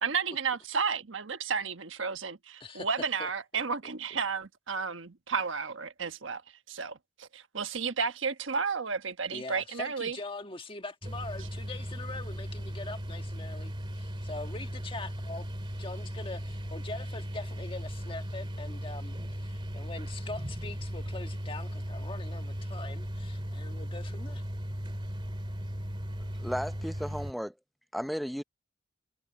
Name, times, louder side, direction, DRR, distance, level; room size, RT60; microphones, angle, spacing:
voice 1, 0.0-6.4 6.7-10.2, right 5 dB, 85° right, 1.2 m, -32 dB
voice 2, 9.3-15.5 15.8-24.4, left 3 dB, 30° left, 1.5 m, -42 dB
sound 1, 11.0-27.3, equal, 25° right, 2.6 m, -37 dB
voice 3, 26.4-27.5 27.9-28.4, equal, ahead, 0.6 m, -34 dB
head